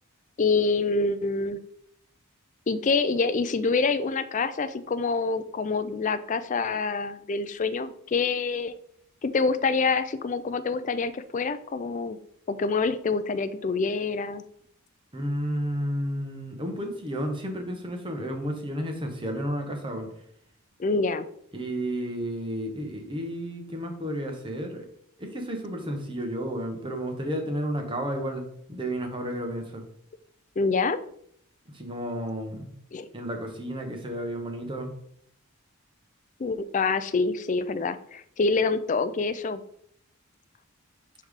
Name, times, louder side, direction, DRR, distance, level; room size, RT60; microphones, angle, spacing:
voice 1, 0.4-1.6 2.7-8.7 9.2-12.2 12.5-14.4 20.8-21.3 30.6-31.0 32.9-33.1 36.4-39.6, left 4 dB, 35° left, 12 dB, 0.4 m, -26 dB
voice 2, 15.1-20.1 21.5-24.8 25.2-28.4 28.7-29.8 31.7-32.7 33.1-34.9, equal, 20° right, 3 dB, 1.1 m, -32 dB
9.8 x 3.3 x 3.6 m, 0.68 s
head